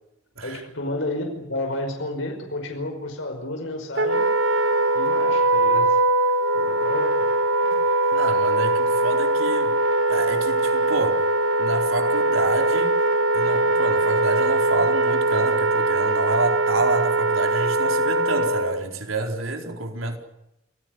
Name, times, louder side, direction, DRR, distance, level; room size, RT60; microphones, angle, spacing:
voice 1, 0.4-4.3 4.9-6.0 6.5-7.3, left 1 dB, 65° left, 5.2 m, -31 dB
Wind instrument woodwind instrument, 4.0-18.8, right 2 dB, 65° right, 1.7 m, -21 dB
voice 2, 8.1-9.7 10.1-11.3 11.6-12.9 13.3-20.2, right 3 dB, 85° right, 4.4 m, -28 dB
28.5 x 16.5 x 9.5 m
head